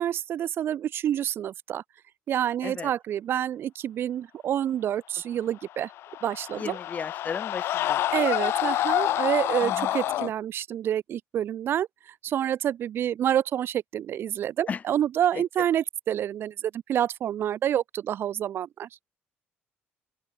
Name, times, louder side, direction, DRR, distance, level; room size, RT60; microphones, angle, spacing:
voice 1, 0.0-1.8 2.3-5.9 6.2-6.8 8.1-11.9 12.2-18.9, right 10 dB, 60° right, 2.2 m, -28 dB
sound 1, 5.8-10.3, left 13 dB, 70° left, 0.5 m, -27 dB
voice 2, 6.5-8.0 9.6-9.9 14.7-14.8 15.3-15.4, left 6 dB, 35° left, 1.3 m, -34 dB
open air
cardioid pair, 100°, 4 cm